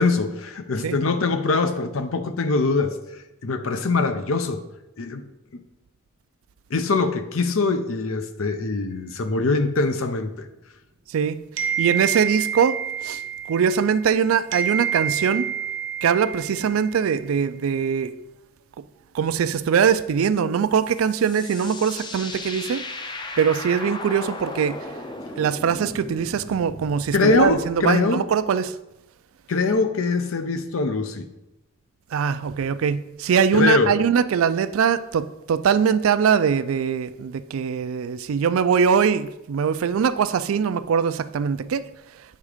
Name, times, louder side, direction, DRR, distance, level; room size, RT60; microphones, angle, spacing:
voice 1, 0.0-4.6 5.0-5.3 5.5-5.6 6.7-10.5 27.1-28.2 29.5-31.3 33.5-33.9, left 3 dB, 80° left, 0.6 m, -23 dB
voice 2, 11.1-13.2 13.5-15.4 16.0-18.1 19.1-22.8 23.4-24.9 25.4-28.7 32.1-41.9, right 7 dB, 85° right, 0.4 m, -22 dB
sound 1, 11.6-14.2 14.5-17.1, right 8 dB, 60° right, 0.7 m, -28 dB
sound 2, 20.6-27.8, left 2 dB, 20° left, 0.5 m, -37 dB
8.4 x 3.6 x 4.9 m
head